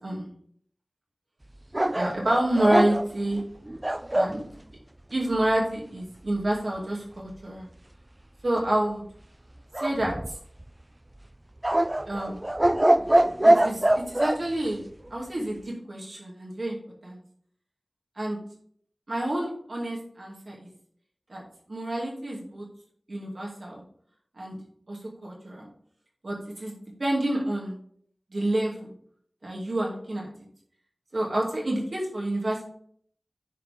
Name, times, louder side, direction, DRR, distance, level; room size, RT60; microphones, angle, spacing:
sound 1, 1.7-4.4 9.7-10.6 11.6-14.4, right 1 dB, 25° right, 0.3 m, -23 dB
voice 1, 1.9-3.4 4.1-4.4 5.1-7.7 8.4-9.1 9.8-10.2 12.1-12.4 13.4-14.8 15.1-16.8 17.0-17.2 18.2-18.4 19.1-20.7 21.3-21.4 21.7-22.7 23.1-23.8 24.4-24.6 24.9-25.7 26.2-27.8 28.3-28.9 29.4-30.3 31.1-32.6, right 1 dB, 70° right, -3 dB, 2.4 m, -28 dB
10.0 x 4.7 x 3.6 m, 0.62 s
wide cardioid pair, 55°, 0 cm